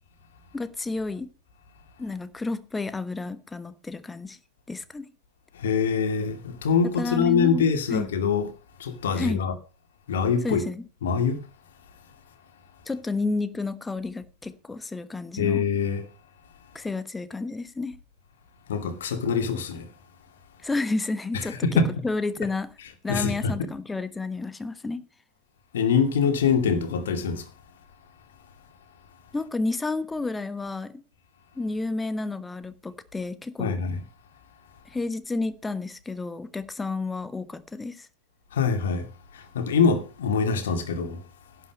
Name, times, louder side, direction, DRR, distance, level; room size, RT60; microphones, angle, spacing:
voice 1, 0.5-1.3 2.0-4.4 4.7-5.1 7.0-8.1 9.2-9.4 10.4-10.8 12.9-15.6 16.7-18.0 20.6-21.6 22.0-22.7 23.0-25.0 29.3-31.0 31.6-33.8 34.9-38.1, left 3 dB, 10° left, 1.1 m, -31 dB
voice 2, 5.6-8.5 8.8-9.5 10.1-10.6 11.0-11.4 15.4-16.0 18.7-19.8 21.3-21.9 23.1-23.7 25.7-27.4 33.6-34.0 38.5-39.1 39.5-41.2, left 5 dB, 60° left, 2.4 m, -24 dB
11.5 x 9.4 x 5.3 m
figure-of-eight pair, 90°, 0 cm